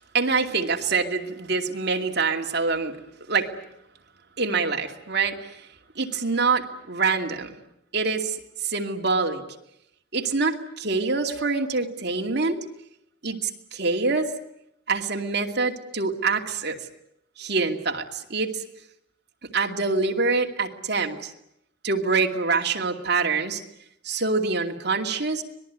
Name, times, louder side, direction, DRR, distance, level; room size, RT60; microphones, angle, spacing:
voice 1, 0.1-2.9 3.3-3.5 4.4-5.6 6.0-7.6 7.9-8.4 8.6-9.4 10.1-12.6 13.2-14.3 14.9-16.8 17.4-18.6 19.5-21.3 21.8-23.6 24.0-25.4, right 4 dB, 55° right, 3 dB, 2.5 m, -25 dB
25.5 x 20.5 x 9.4 m, 0.78 s
head